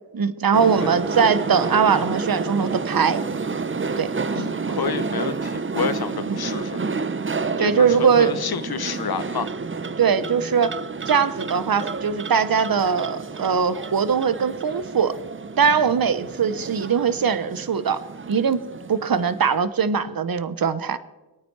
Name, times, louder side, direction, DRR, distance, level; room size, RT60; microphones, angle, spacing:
voice 1, 0.1-3.2 4.0-4.1 6.3-6.4 7.6-8.3 10.0-10.8 11.1-15.1 15.6-18.0 18.3-18.6 18.9-21.0, right 6 dB, 65° right, 14 dB, 0.9 m, -21 dB
sound 1, 0.5-19.6, right 4 dB, 30° right, 0.6 m, -30 dB
voice 2, 4.3-6.9 7.6-9.5, left 7 dB, 75° left, 13 dB, 0.9 m, -29 dB
23.0 x 9.1 x 4.7 m, 1.1 s
wide cardioid pair, 65°, 38 cm